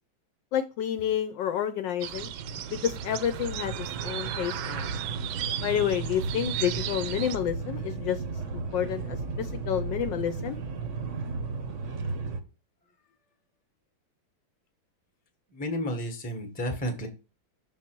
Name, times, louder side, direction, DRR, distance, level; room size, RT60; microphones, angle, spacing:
voice 1, 0.5-2.3 2.7-4.9 5.6-8.2 8.5-10.6, left 10 dB, 70° left, 8 dB, 1.1 m, -29 dB
sound 1, 2.0-7.4, right 12 dB, 75° right, 1.3 m, -36 dB
sound 2, 2.1-12.4, right 4 dB, 55° right, 0.8 m, -35 dB
voice 2, 15.5-17.1, equal, 5° left, 5 dB, 0.7 m, -32 dB
6.1 x 4.1 x 4.4 m, 0.31 s
omnidirectional pair, 2.3 m